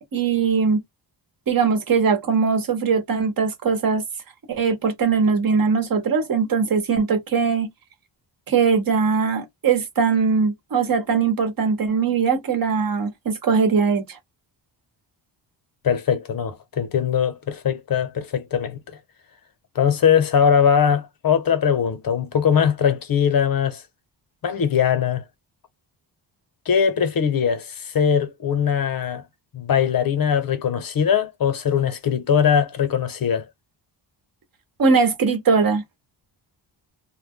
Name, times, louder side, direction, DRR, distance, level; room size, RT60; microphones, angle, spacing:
voice 1, 0.1-0.8 1.5-4.0 4.5-7.7 8.5-14.2 34.8-35.8, right 5 dB, 50° right, 0.9 m, -20 dB
voice 2, 15.8-18.8 19.7-23.8 24.4-25.2 26.7-29.2 29.5-33.5, left 7 dB, 50° left, 0.7 m, -21 dB
2.1 x 2.1 x 3.5 m
wide cardioid pair, 115°, 45 cm